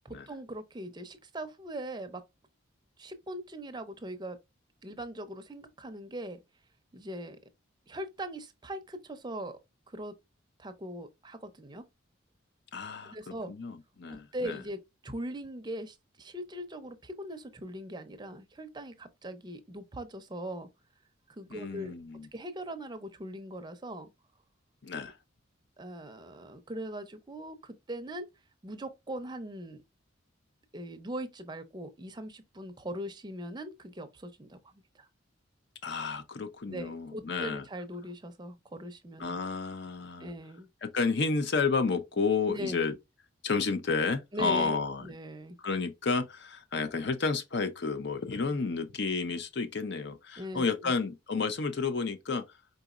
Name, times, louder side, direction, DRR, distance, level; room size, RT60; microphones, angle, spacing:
voice 1, 0.0-2.2 3.0-4.4 4.8-6.4 6.9-7.4 7.9-9.6 9.9-10.1 10.6-11.8 13.1-13.5 14.3-20.7 21.4-21.9 22.3-24.1 25.8-28.3 28.6-29.8 30.7-34.6 35.0-35.1 36.6-39.4 40.2-40.7 42.5-42.8 44.3-45.6 50.4-50.9, equal, 20° right, 0.5 m, -40 dB
voice 2, 12.7-14.6 21.5-22.3 24.8-25.2 35.8-37.7 39.2-40.3 40.8-42.9 43.4-45.1 45.6-52.4, left 4 dB, 55° left, 0.6 m, -31 dB
4.7 x 4.0 x 2.4 m
head